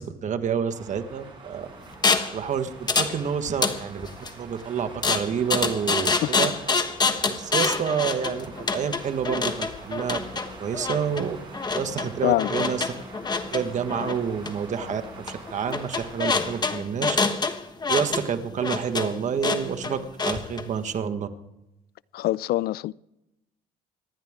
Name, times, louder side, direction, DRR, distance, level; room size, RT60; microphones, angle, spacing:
voice 1, 0.0-1.7 2.3-6.5 7.3-10.2 10.6-11.4 11.7-12.9 13.5-17.2 17.9-21.3, right 7 dB, 45° right, 1.5 m, -28 dB
sound 1, 0.7-16.6, right 4 dB, 30° right, 6.9 m, -45 dB
sound 2, 2.0-2.4 2.9-3.2 3.5-4.3 5.0-20.6, left 4 dB, 25° left, 1.3 m, -26 dB
voice 2, 22.1-22.9, left 16 dB, 65° left, 0.4 m, -24 dB
26.0 x 10.5 x 3.7 m
cardioid pair, 110°, 17 cm